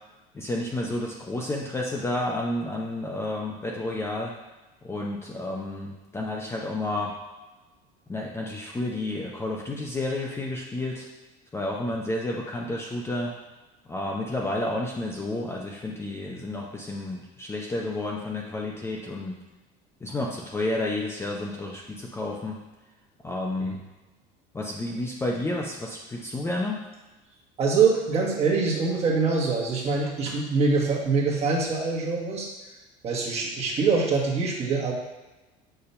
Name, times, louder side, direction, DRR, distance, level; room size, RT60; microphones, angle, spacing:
voice 1, 0.3-4.3 4.8-5.9 6.1-7.1 8.1-11.1 11.5-13.3 13.9-19.4 20.0-22.6 23.2-23.8 24.5-26.8, left 2 dB, 15° left, -1 dB, 0.6 m, -30 dB
voice 2, 27.6-32.5 33.0-34.9, right 4 dB, 35° right, -2 dB, 1.4 m, -24 dB
6.8 x 2.8 x 5.6 m, 1.1 s
cardioid pair, 135°, 19 cm